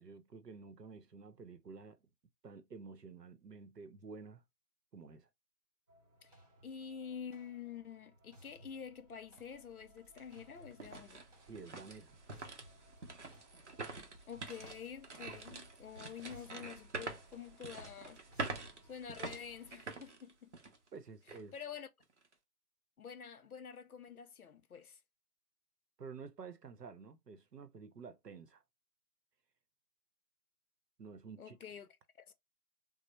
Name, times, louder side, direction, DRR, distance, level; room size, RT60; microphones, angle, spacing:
voice 1, 0.0-2.0 2.4-4.4 4.9-5.3 11.4-12.2 20.9-21.5 26.0-28.6 31.0-31.6, right 5 dB, 80° right, 0.8 m, -51 dB
sound 1, 5.9-19.7, equal, 25° right, 0.9 m, -63 dB
voice 2, 6.6-11.2 14.3-18.2 18.8-20.5 21.5-21.9 23.0-25.0 31.4-31.9 32.2-32.3, left 7 dB, 65° left, 0.6 m, -48 dB
sound 2, 9.4-9.5 10.0-20.9 21.3-21.4 22.0-22.3, right 3 dB, 50° right, 0.6 m, -46 dB
3.1 x 2.0 x 2.9 m
figure-of-eight pair, 155°, 48 cm